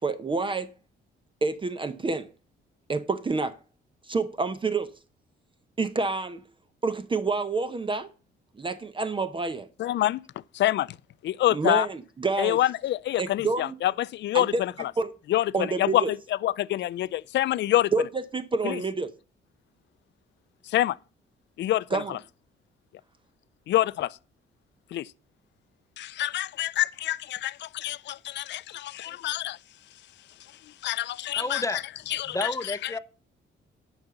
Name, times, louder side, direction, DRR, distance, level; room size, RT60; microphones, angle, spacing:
voice 1, 0.0-0.7 1.4-2.3 2.9-3.6 4.0-4.9 5.8-6.4 6.8-8.1 8.6-9.7 11.5-12.6 13.2-13.8 14.3-14.6 15.0-15.1 15.5-16.1 17.9-19.1 21.9-22.2, right 3 dB, 25° right, 0.7 m, -28 dB
voice 2, 9.8-10.2 10.5-11.0 11.2-11.9 12.4-14.9 15.3-16.2 16.4-17.9 18.6-18.8 20.7-21.0 21.6-22.2 23.7-24.2 24.9-25.1 26.0-29.6 30.8-31.6 32.1-32.5, left 14 dB, 65° left, 0.5 m, -26 dB
voice 3, 31.4-31.8 32.2-33.0, left 2 dB, 15° left, 0.8 m, -30 dB
10.5 x 5.0 x 6.8 m
cardioid pair, 90°, 20 cm